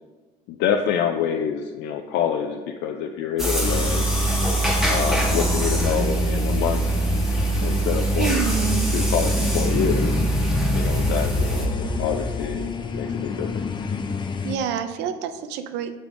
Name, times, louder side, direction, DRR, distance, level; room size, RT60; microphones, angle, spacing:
voice 1, 0.5-4.1 4.9-6.8 7.6-10.1 10.8-13.7, left 8 dB, 85° left, 3 dB, 0.4 m, -27 dB
sound 1, 3.4-11.7, right 3 dB, ahead, 1.1 m, -23 dB
sound 2, 3.6-14.6, left 4 dB, 25° left, 0.5 m, -27 dB
voice 2, 8.2-8.9 14.4-16.0, right 7 dB, 90° right, 9 dB, 0.5 m, -27 dB
7.6 x 3.5 x 3.6 m, 1.3 s
cardioid pair, 110°, 17 cm